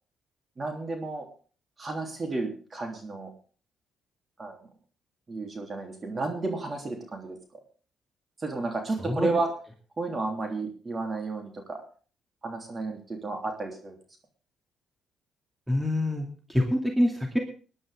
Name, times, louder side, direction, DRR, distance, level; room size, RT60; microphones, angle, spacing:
voice 1, 0.6-1.3 1.8-3.3 4.4-4.6 5.3-7.4 8.4-9.5 10.0-11.8 12.4-13.9, right 3 dB, 35° right, 3 dB, 3.3 m, -32 dB
voice 2, 15.7-17.4, left 1 dB, 10° right, 3 dB, 2.4 m, -26 dB
19.5 x 11.0 x 3.7 m, 0.39 s
cardioid pair, 90°, 0 cm